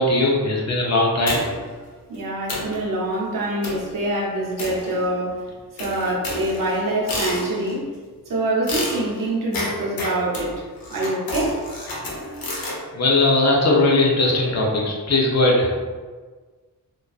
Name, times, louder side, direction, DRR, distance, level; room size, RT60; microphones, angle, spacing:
voice 1, 0.0-1.4 12.9-15.7, left 2 dB, 50° left, -2 dB, 0.6 m, -19 dB
sound 1, 1.3-1.7 2.1-2.2 2.5-2.8 3.6-3.9 4.6-5.3 5.8-7.8 8.7-12.8, left 2 dB, 85° left, 0.7 m, -30 dB
voice 2, 2.1-5.4 5.8-7.9 8.3-10.5 10.9-11.6, right 1 dB, 70° right, -4 dB, 0.7 m, -25 dB
2.4 x 2.2 x 2.3 m, 1.4 s
wide cardioid pair, 105°, 34 cm